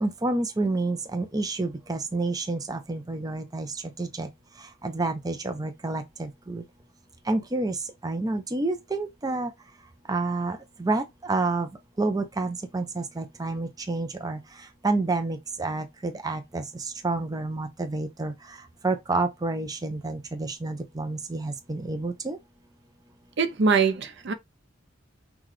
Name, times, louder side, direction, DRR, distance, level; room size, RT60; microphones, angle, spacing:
voice 1, 0.0-3.7 4.0-4.3 4.8-6.6 7.3-7.7 8.0-9.5 10.1-11.7 12.0-14.4 14.8-16.6 17.0-18.3 18.8-22.4, right 2 dB, 20° right, 0.6 m, -29 dB
voice 2, 23.4-24.3, right 4 dB, 60° right, 0.6 m, -23 dB
5.7 x 2.3 x 3.2 m
head